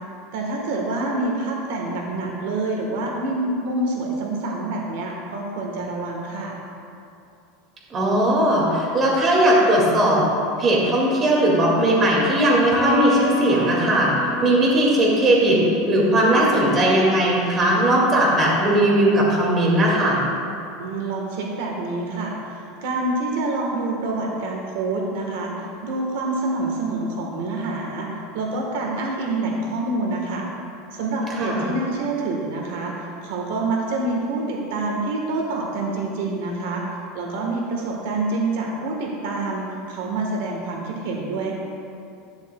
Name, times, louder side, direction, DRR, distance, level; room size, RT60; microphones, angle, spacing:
voice 1, 0.3-6.5 20.8-28.1 28.3-30.5 30.9-36.8 37.1-41.5, right 2 dB, 75° right, 0 dB, 1.3 m, -27 dB
voice 2, 7.9-10.2 10.6-14.1 14.4-15.6 15.9-20.2 31.4-31.6, right 1 dB, 25° right, -4 dB, 2.0 m, -18 dB
Electric guitar, 12.7-16.3, right 1 dB, 5° right, 2.2 m, -29 dB
11.0 x 10.0 x 2.3 m, 2.6 s
supercardioid pair, 155°, 0 cm